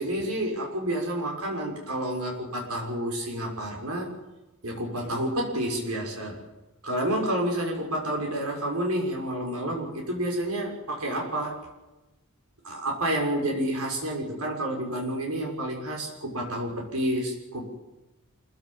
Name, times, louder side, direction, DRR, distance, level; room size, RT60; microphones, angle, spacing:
voice 1, 0.0-4.1 4.6-6.4 6.8-11.6 12.6-17.7, right 1 dB, 80° right, 0 dB, 6.5 m, -29 dB
27.0 x 16.5 x 7.4 m, 1.0 s
head